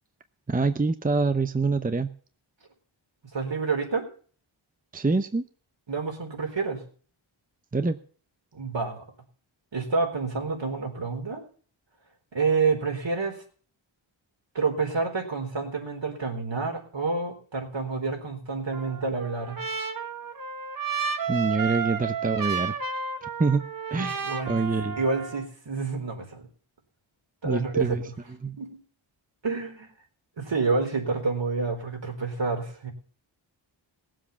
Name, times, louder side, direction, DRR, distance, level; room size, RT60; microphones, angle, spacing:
voice 1, 0.5-2.1 4.9-5.5 7.7-8.0 21.3-22.7 23.2-23.6 23.9-25.0 27.4-28.0 28.4-28.5, right 3 dB, 20° right, 10 dB, 0.7 m, -25 dB
voice 2, 3.3-4.1 5.9-6.8 8.5-9.1 9.7-11.4 12.3-13.4 14.5-19.6 23.9-24.5 25.0-26.5 27.4-28.1 28.6-28.7 29.4-29.9 30.4-32.9, right 4 dB, 65° right, 3 dB, 4.2 m, -28 dB
Trumpet, 18.7-25.5, right 6 dB, 45° right, 1.5 m, -32 dB
18.0 x 7.7 x 7.0 m, 0.44 s
wide cardioid pair, 90°, 48 cm